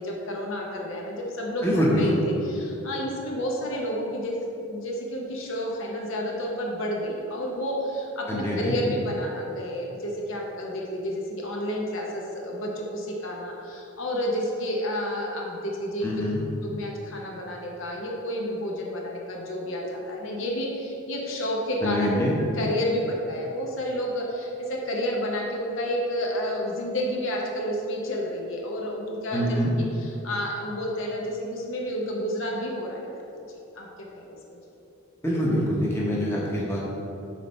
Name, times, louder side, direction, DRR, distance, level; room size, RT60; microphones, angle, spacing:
voice 1, 0.0-16.1 16.6-22.3 22.5-29.6 30.0-33.1 33.5-33.9 34.1-34.4, equal, 60° left, -1 dB, 0.8 m, -30 dB
voice 2, 1.6-2.2 8.3-8.7 16.0-16.4 21.8-22.3 29.3-29.7 35.2-36.8, equal, 10° left, -5 dB, 0.9 m, -25 dB
5.9 x 4.3 x 4.2 m, 2.9 s
head